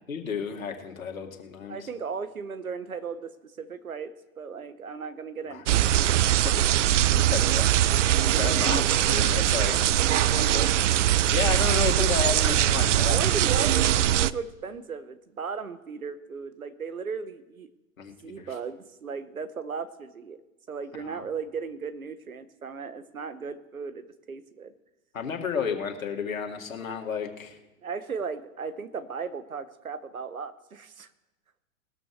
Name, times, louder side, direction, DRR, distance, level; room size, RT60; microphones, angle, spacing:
voice 1, 0.1-1.9 5.5-5.6 6.4-13.4 18.0-18.5 21.0-21.3 25.1-27.6, left 6 dB, 75° left, 2 dB, 2.2 m, -33 dB
voice 2, 1.7-5.9 8.5-8.8 13.1-17.7 18.2-20.4 20.7-24.7 27.8-31.1, right 5 dB, 85° right, 12 dB, 1.2 m, -36 dB
sound 1, 5.7-14.3, right 12 dB, 60° right, 0.5 m, -22 dB
20.0 x 13.5 x 3.3 m, 1.0 s
figure-of-eight pair, 115°, 41 cm